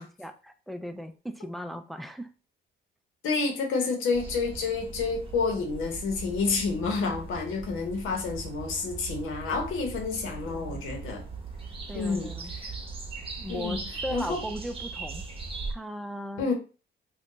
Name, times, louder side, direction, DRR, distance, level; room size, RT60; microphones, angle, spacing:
voice 1, 0.0-2.3 10.4-10.9 11.9-12.5 13.4-15.3 15.7-16.5, equal, ahead, 0.4 m, -37 dB
voice 2, 3.2-11.2 11.9-12.7 13.5-13.8 14.1-14.4 16.4-16.5, left 4 dB, 85° left, 0.9 m, -29 dB
sound 1, 4.1-15.7, right 4 dB, 30° right, 0.8 m, -39 dB
2.6 x 2.3 x 3.7 m
cardioid pair, 90°, 20 cm